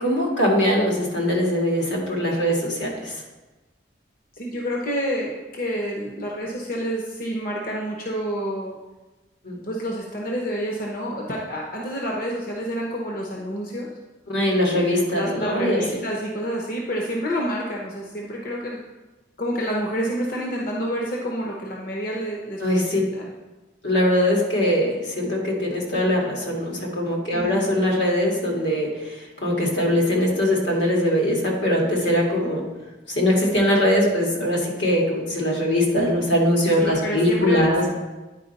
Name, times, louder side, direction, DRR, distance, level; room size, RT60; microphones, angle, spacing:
voice 1, 0.0-3.1 9.4-9.6 14.3-15.8 22.6-23.0 23.8-32.6 33.1-37.9, equal, 85° left, -2 dB, 2.0 m, -21 dB
voice 2, 4.4-8.8 9.6-13.9 14.7-18.8 19.4-23.3 27.3-27.7 36.8-37.9, equal, 50° left, -1 dB, 0.8 m, -28 dB
9.9 x 4.4 x 4.0 m, 1.1 s
head